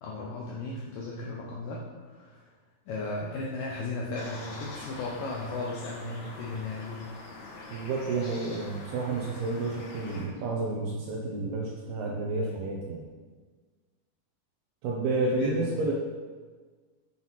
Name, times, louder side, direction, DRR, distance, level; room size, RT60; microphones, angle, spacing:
voice 1, 0.0-2.5 2.9-7.0 15.1-15.8, left 3 dB, 85° left, -3 dB, 1.9 m, -36 dB
sound 1, 4.2-10.3, left 2 dB, 65° left, 2.9 m, -44 dB
voice 2, 7.7-13.0 14.8-15.9, right 3 dB, 75° right, -1 dB, 2.3 m, -30 dB
7.6 x 5.9 x 5.7 m, 1.4 s
omnidirectional pair, 5.3 m